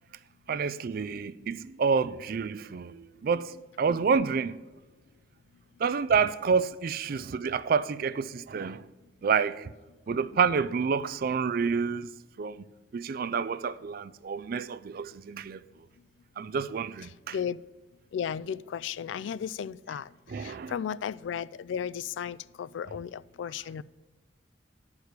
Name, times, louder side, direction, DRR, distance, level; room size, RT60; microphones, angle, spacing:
voice 1, 0.5-4.6 5.8-8.8 9.2-9.7 10.1-12.1 12.4-12.7 12.9-15.6 16.4-17.3 20.3-20.7, right 5 dB, 50° right, 0.4 m, -28 dB
voice 2, 18.1-20.1 20.4-23.8, left 8 dB, 80° left, 0.3 m, -34 dB
10.5 x 4.8 x 6.5 m
head